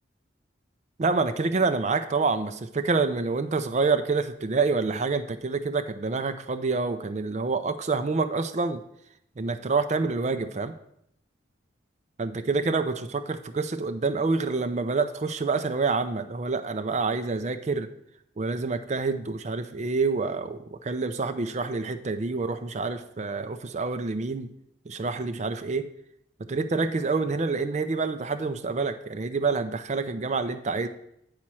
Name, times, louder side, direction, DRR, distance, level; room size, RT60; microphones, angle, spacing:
voice 1, 1.0-8.8 9.4-10.7 12.2-17.9 18.4-24.5 24.9-25.9 26.4-30.9, right 4 dB, 35° right, 8 dB, 0.4 m, -27 dB
8.8 x 4.2 x 6.1 m, 0.76 s
head